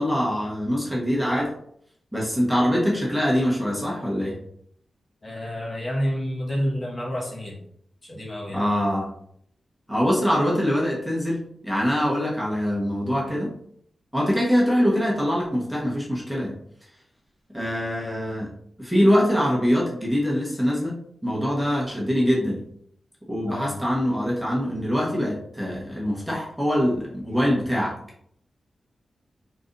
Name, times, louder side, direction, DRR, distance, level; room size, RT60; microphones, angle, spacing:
voice 1, 0.0-1.5 2.1-4.4 8.5-9.1 9.9-13.5 14.1-16.6 17.5-18.5 18.8-22.6 23.3-28.0, equal, 5° left, -5 dB, 1.1 m, -23 dB
voice 2, 5.2-7.6 8.0-8.7 23.5-23.7, equal, 35° left, -3 dB, 1.2 m, -29 dB
3.9 x 3.3 x 2.7 m, 0.68 s
wide cardioid pair, 90°, 0 cm